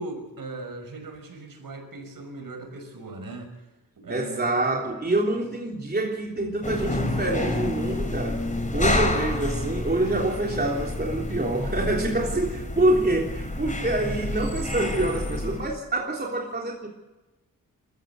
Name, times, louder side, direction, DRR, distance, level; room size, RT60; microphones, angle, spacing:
voice 1, 0.0-3.5 4.0-4.5 5.3-5.4 12.1-12.2, right 2 dB, 75° right, 5 dB, 5.8 m, -38 dB
voice 2, 4.1-8.5 8.7-16.9, right 2 dB, 30° right, -1 dB, 3.5 m, -26 dB
sound 1, 6.6-15.8, left 2 dB, 20° left, 4.0 m, -29 dB
23.5 x 15.0 x 8.2 m, 1.1 s
cardioid pair, 70°, 34 cm